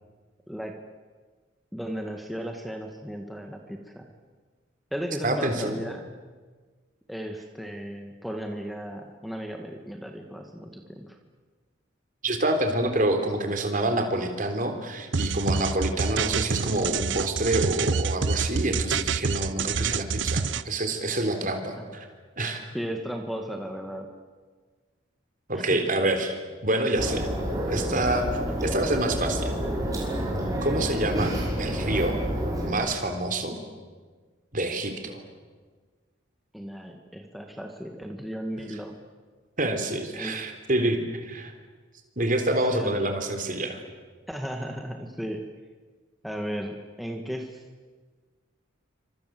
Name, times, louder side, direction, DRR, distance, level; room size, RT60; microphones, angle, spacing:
voice 1, 1.7-4.1 4.9-6.0 7.1-11.2 20.4-20.5 22.7-24.1 25.5-25.8 36.5-38.9 40.2-40.4 42.7-42.9 44.3-45.4 46.2-47.6, equal, ahead, 2 dB, 1.9 m, -35 dB
voice 2, 5.2-5.8 12.2-22.1 22.4-22.6 25.5-26.4 26.6-27.3 27.7-28.3 28.6-29.5 30.6-32.2 32.6-33.6 34.5-35.2 39.6-41.5 42.2-43.8, right 1 dB, 45° right, 6 dB, 3.8 m, -27 dB
sound 1, 15.1-20.6, right 5 dB, 65° right, 0.8 m, -27 dB
sound 2, 27.0-32.7, equal, 20° right, 5.9 m, -29 dB
28.5 x 26.0 x 7.8 m, 1.5 s
head